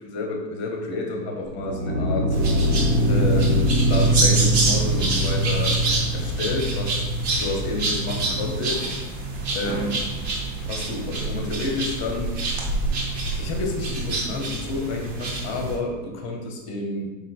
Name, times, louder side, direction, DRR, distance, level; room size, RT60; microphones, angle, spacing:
voice 1, 0.0-2.4 3.1-5.8 6.1-7.0 7.4-8.9 9.5-10.0 10.6-12.4 13.4-17.1, left 2 dB, 10° left, 2 dB, 0.6 m, -29 dB
sound 1, 1.5-8.7, equal, 75° right, 1.7 m, -23 dB
sound 2, 2.3-15.8, right 3 dB, 40° right, 1.5 m, -27 dB
6.7 x 4.7 x 4.1 m, 1.3 s
supercardioid pair, 175°, 49 cm